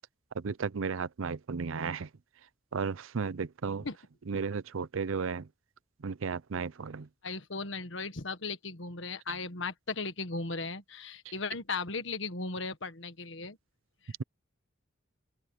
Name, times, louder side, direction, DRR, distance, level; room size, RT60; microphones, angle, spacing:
voice 1, 0.4-2.1 2.7-3.8 4.3-5.5 6.0-7.1, right 5 dB, 80° right, 0.6 m, -34 dB
voice 2, 7.2-13.6 14.0-14.1, left 4 dB, 65° left, 1.6 m, -37 dB
open air
head